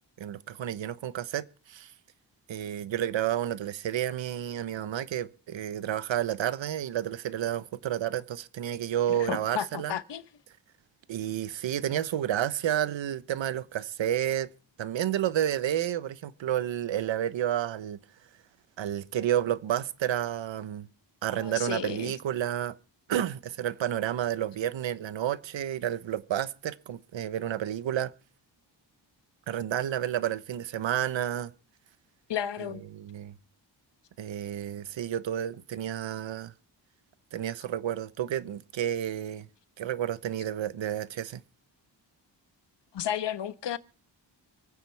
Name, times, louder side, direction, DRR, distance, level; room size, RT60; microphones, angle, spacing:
voice 1, 0.2-1.9 2.5-9.9 11.1-14.5 14.8-18.0 18.8-20.9 21.2-22.7 23.1-28.1 29.5-31.5 32.9-33.3 34.2-36.5 37.3-39.5 39.8-41.4, right 11 dB, 90° right, 1.1 m, -30 dB
voice 2, 9.1-10.2 21.3-22.1 32.3-32.8 42.9-43.8, left 9 dB, 70° left, 1.2 m, -33 dB
28.0 x 9.5 x 3.4 m
cardioid pair, 80°, 44 cm